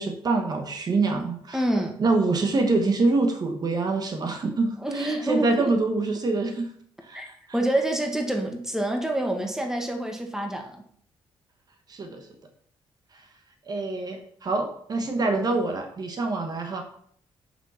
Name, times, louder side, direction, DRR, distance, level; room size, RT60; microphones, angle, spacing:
voice 1, 0.0-1.6 2.0-6.7 7.0-7.3 11.9-12.3 13.1-13.2 13.7-16.8, right 3 dB, 45° right, 5 dB, 1.1 m, -25 dB
voice 2, 1.5-2.0 4.8-5.7 7.1-7.3 7.5-10.8, right 1 dB, 5° right, 3 dB, 1.5 m, -27 dB
7.0 x 6.0 x 4.2 m, 0.63 s
cardioid pair, 95°, 9 cm